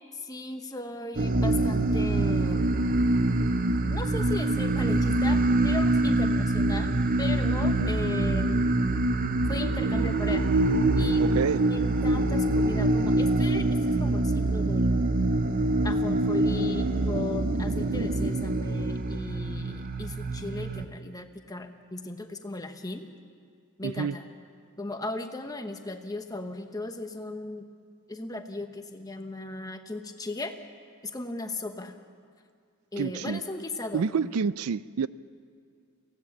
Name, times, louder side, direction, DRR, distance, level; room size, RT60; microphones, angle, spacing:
voice 1, 0.1-2.8 3.9-8.7 9.5-10.5 11.0-15.1 15.8-23.1 23.8-24.3 24.8-27.6 28.1-30.5 31.0-31.9 32.9-34.3, left 2 dB, 15° left, 6 dB, 1.1 m, -37 dB
sound 1, 1.2-20.8, right 2 dB, 40° right, 0.7 m, -25 dB
voice 2, 11.2-11.6 23.8-24.2 33.0-33.4 33.9-35.1, right 6 dB, 80° right, 18 dB, 0.4 m, -28 dB
23.5 x 16.5 x 7.2 m, 2.2 s
head